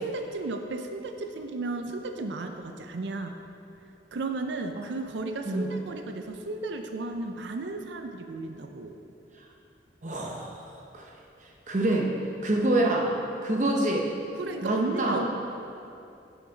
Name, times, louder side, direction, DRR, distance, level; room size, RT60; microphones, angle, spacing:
voice 1, 0.0-3.4 4.1-9.0 14.4-15.3, right 3 dB, 75° right, 5 dB, 0.5 m, -34 dB
voice 2, 10.0-11.1 11.7-12.1 12.4-13.1 13.4-14.1 14.6-15.2, right 1 dB, 40° right, 0 dB, 0.8 m, -26 dB
9.2 x 5.9 x 3.9 m, 2.7 s
head